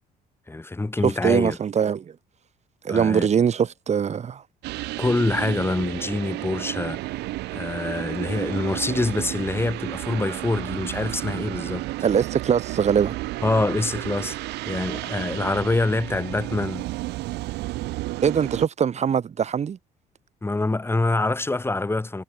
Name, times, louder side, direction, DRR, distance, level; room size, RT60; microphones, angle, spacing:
voice 1, 0.5-1.6 2.9-3.3 5.0-7.2 7.5-11.9 13.4-16.9 20.4-22.2, left 2 dB, 15° left, 6.3 m, -25 dB
voice 2, 1.0-2.1 2.8-4.4 12.0-13.2 18.2-19.8, right 7 dB, 40° right, 3.8 m, -22 dB
sound 1, 4.6-18.7, right 19 dB, 85° right, 4.4 m, -32 dB
cardioid pair, 110°, 17 cm